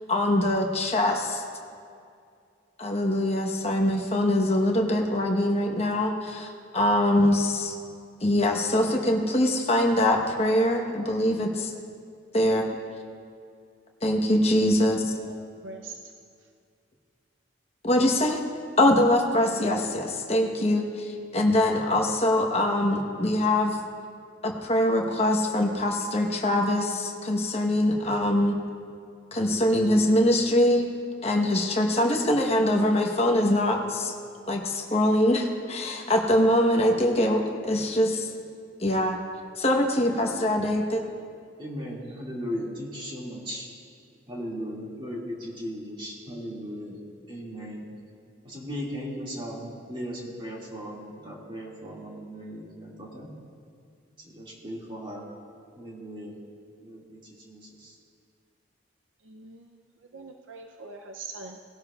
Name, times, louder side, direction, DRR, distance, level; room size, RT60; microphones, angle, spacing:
voice 1, 0.1-1.4 2.8-7.7 8.2-11.7 12.3-12.6 14.0-15.1 17.8-18.4 18.8-23.8 24.4-28.6 29.3-30.8 31.2-34.1 34.5-38.3 38.8-39.2 39.6-41.0, left 1 dB, 30° left, 1 dB, 1.1 m, -23 dB
voice 2, 15.6-15.9 59.3-59.7 60.1-61.6, right 4 dB, 85° right, 3 dB, 0.6 m, -42 dB
voice 3, 41.6-43.7 44.3-47.0 47.3-47.8 48.4-53.3 54.2-55.3 55.8-56.3 56.8-58.0, equal, 25° right, -4 dB, 2.2 m, -37 dB
18.5 x 12.0 x 2.4 m, 2.3 s
head